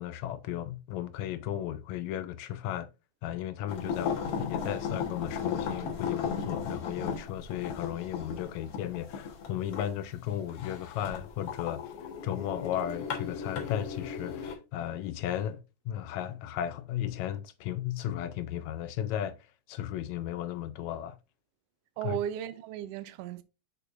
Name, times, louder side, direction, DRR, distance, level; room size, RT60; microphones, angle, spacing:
voice 1, 0.0-2.9 3.2-11.8 12.2-19.3 19.7-21.2 22.0-22.2, left 11 dB, 80° left, 1.8 m, -35 dB
sound 1, 3.7-14.5, left 6 dB, 60° left, 2.0 m, -36 dB
voice 2, 22.0-23.4, right 11 dB, 80° right, 1.5 m, -35 dB
6.7 x 6.4 x 2.5 m
omnidirectional pair, 3.4 m